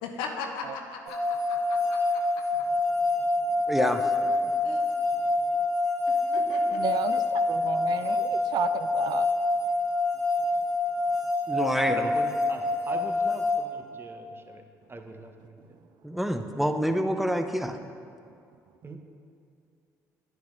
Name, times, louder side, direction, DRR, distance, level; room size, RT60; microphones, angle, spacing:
voice 1, 0.0-2.0 4.6-4.9 6.1-6.8, left 5 dB, 75° left, 3 dB, 0.8 m, -38 dB
sound 1, 1.1-13.6, left 2 dB, 90° right, 1.0 m, -26 dB
voice 2, 3.7-4.1 11.5-12.0 16.0-17.8, equal, 5° right, 7 dB, 0.7 m, -27 dB
voice 3, 6.7-9.3, right 8 dB, 55° right, 11 dB, 0.4 m, -32 dB
voice 4, 11.9-14.6 14.9-15.8 18.8-19.0, right 2 dB, 25° right, 5 dB, 0.9 m, -40 dB
10.5 x 9.6 x 2.6 m, 2.5 s
hypercardioid pair, 55°, 9 cm